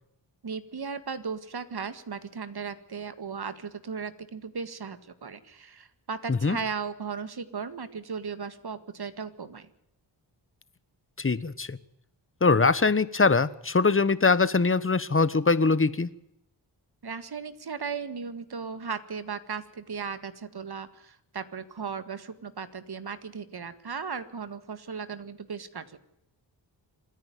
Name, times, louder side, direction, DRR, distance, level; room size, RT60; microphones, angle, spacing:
voice 1, 0.4-9.7 17.0-26.0, right 5 dB, 60° right, 12 dB, 1.9 m, -36 dB
voice 2, 11.2-11.8 12.4-16.1, left 4 dB, 30° left, 16 dB, 1.2 m, -22 dB
27.0 x 10.5 x 9.3 m, 0.81 s
cardioid pair, 60°, 44 cm